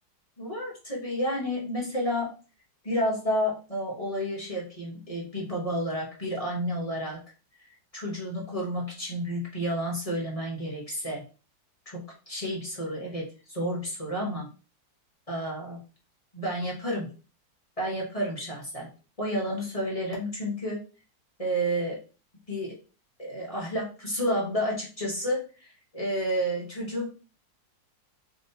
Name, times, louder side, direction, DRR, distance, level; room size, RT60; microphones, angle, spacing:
voice 1, 0.4-2.3 2.8-7.2 7.9-11.2 11.9-12.0 12.3-14.5 15.3-15.8 16.3-17.1 17.8-18.9 19.2-20.8 21.4-22.0 22.5-22.7 23.2-27.1, equal, 25° left, -4 dB, 0.8 m, -30 dB
3.6 x 3.5 x 2.7 m, 0.36 s
omnidirectional pair, 2.1 m